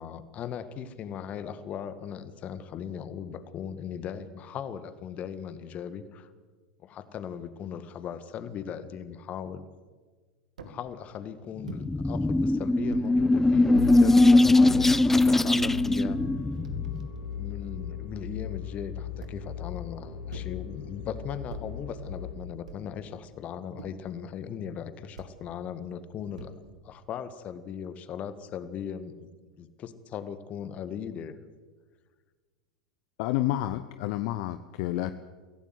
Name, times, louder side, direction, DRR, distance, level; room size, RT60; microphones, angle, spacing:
voice 1, 0.0-6.3 6.8-9.6 10.6-16.2 17.3-29.3 29.6-31.4, left 8 dB, 35° left, 12 dB, 1.8 m, -38 dB
sound 1, 10.6-10.8 11.7-11.9 12.9-13.2 14.0-14.2 14.9-15.3 16.0-16.1 16.4-17.4 19.2-19.6 20.3-20.6 21.5-21.8 22.7-23.0 23.8-24.1 25.1-25.4 26.4-26.8, right 5 dB, 75° right, 2.4 m, -45 dB
sound 2, 11.6-17.1, left 2 dB, 5° left, 0.6 m, -21 dB
sound 3, 13.7-22.3, left 8 dB, 85° left, 5.1 m, -38 dB
voice 2, 33.2-35.1, left 15 dB, 55° left, 11 dB, 0.8 m, -29 dB
23.5 x 16.5 x 8.1 m, 1.4 s
figure-of-eight pair, 85°, 4 cm